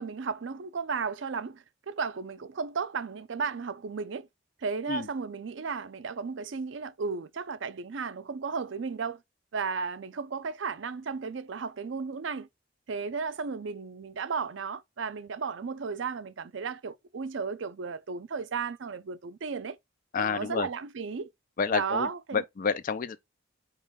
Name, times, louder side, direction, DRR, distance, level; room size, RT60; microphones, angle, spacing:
voice 1, 0.0-4.3 4.6-9.2 9.5-12.5 12.9-19.8 20.2-21.3 21.7-22.4, right 5 dB, 65° right, 0.5 m, -34 dB
voice 2, 20.1-20.7 21.6-23.2, left 5 dB, 45° left, 0.4 m, -29 dB
4.8 x 3.0 x 3.5 m
head